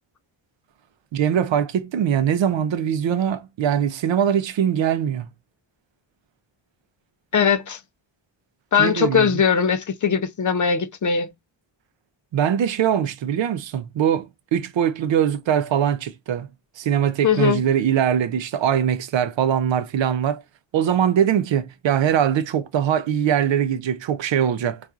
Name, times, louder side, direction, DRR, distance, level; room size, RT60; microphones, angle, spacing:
voice 1, 1.1-5.3 8.8-9.4 12.3-16.5 16.8-20.4 20.7-24.8, right 9 dB, 65° right, 0.6 m, -22 dB
voice 2, 7.3-7.8 8.7-11.3 17.2-17.6, left 7 dB, 40° left, 0.5 m, -20 dB
4.1 x 2.4 x 2.4 m
cardioid pair, 100°, 48 cm